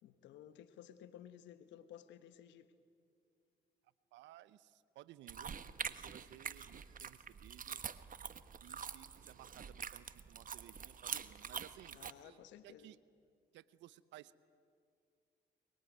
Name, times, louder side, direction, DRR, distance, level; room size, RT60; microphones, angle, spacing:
voice 1, 0.0-2.7 11.9-12.9, left 10 dB, 85° left, 12 dB, 1.3 m, -56 dB
voice 2, 4.1-7.8 8.6-12.4 12.6-13.0 13.5-14.4, right 14 dB, 85° right, 18 dB, 0.8 m, -58 dB
sound 1, 5.3-12.1, right 7 dB, 50° right, 1.2 m, -46 dB
22.5 x 22.5 x 9.4 m, 2.3 s
supercardioid pair, 60°, 18 cm